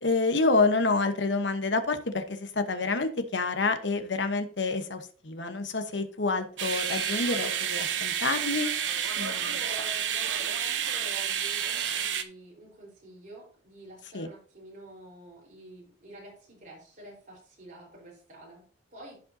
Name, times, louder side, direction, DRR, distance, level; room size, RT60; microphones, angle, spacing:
voice 1, 0.0-8.7 9.2-9.6 14.1-14.3, left 3 dB, 75° left, 8 dB, 1.1 m, -28 dB
sound 1, 6.6-12.2, right 8 dB, 85° right, 0.9 m, -30 dB
voice 2, 9.1-18.6 18.9-19.2, right 1 dB, 45° right, -3 dB, 4.3 m, -48 dB
15.0 x 5.4 x 2.8 m, 0.42 s
head